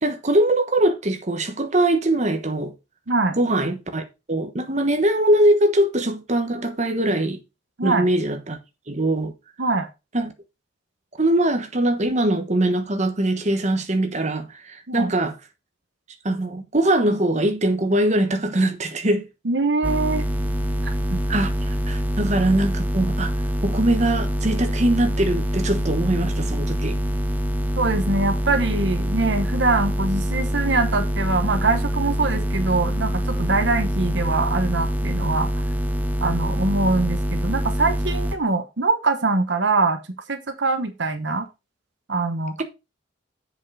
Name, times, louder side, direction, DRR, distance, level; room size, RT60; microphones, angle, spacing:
voice 1, 0.0-2.7 3.4-4.0 4.3-7.4 7.8-8.6 8.9-9.3 10.1-10.3 11.2-15.3 16.2-19.2 21.3-23.3 23.6-27.0, right 1 dB, 35° right, 1.2 m, -22 dB
voice 2, 3.1-3.4 7.8-8.1 9.6-9.9 14.9-15.1 19.4-20.2 20.8-21.2 22.2-22.3 27.8-35.6 36.2-40.0 40.3-41.5 42.1-42.6, right 3 dB, 60° right, 1.1 m, -23 dB
sound 1, 19.8-38.3, equal, 10° right, 0.8 m, -25 dB
7.4 x 5.5 x 4.8 m
head